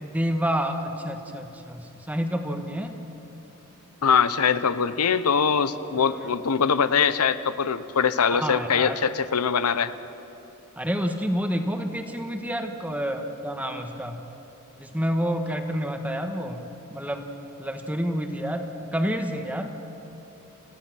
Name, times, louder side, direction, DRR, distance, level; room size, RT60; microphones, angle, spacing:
voice 1, 0.0-2.9 6.0-6.2 8.3-9.0 10.8-14.2 14.8-17.2 17.6-19.7, equal, 5° right, 5 dB, 1.3 m, -29 dB
voice 2, 4.0-9.9, left 6 dB, 90° left, 13 dB, 0.7 m, -22 dB
28.5 x 15.5 x 6.1 m, 2.9 s
head